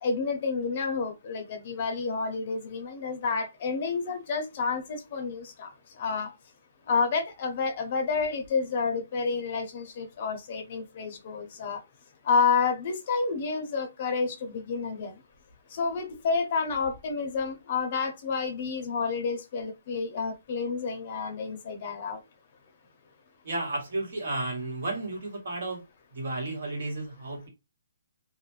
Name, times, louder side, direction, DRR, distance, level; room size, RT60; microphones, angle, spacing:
voice 1, 0.0-5.7 6.0-6.3 6.9-11.8 12.2-15.2 15.7-22.2, left 5 dB, 35° left, 0.6 m, -29 dB
voice 2, 23.4-25.8 26.1-27.5, right 2 dB, 60° right, 1.3 m, -33 dB
2.4 x 2.1 x 3.1 m
hypercardioid pair, 170°, 0 cm